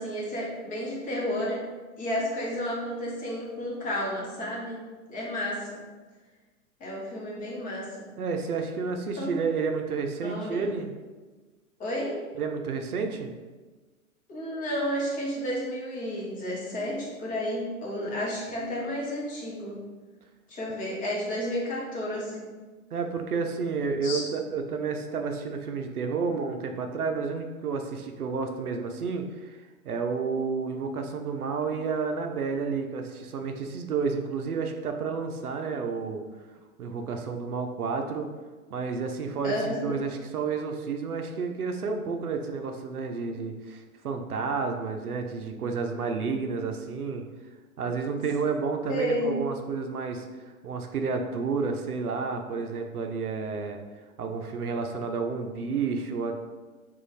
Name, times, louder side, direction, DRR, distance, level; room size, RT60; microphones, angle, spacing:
voice 1, 0.0-1.6 2.0-4.8 5.1-5.8 6.8-8.1 9.2-9.4 10.2-10.7 11.8-12.2 14.3-19.8 20.5-22.5 24.0-24.2 39.4-40.0 48.9-49.4, left 1 dB, 20° left, -4 dB, 0.9 m, -31 dB
voice 2, 8.2-10.9 12.4-13.3 22.9-29.6 29.8-36.2 36.8-38.3 38.7-47.2 47.8-53.8 54.2-56.3, right 5 dB, 85° right, 5 dB, 0.6 m, -30 dB
3.0 x 2.4 x 4.0 m, 1.3 s
figure-of-eight pair, 105°, 44 cm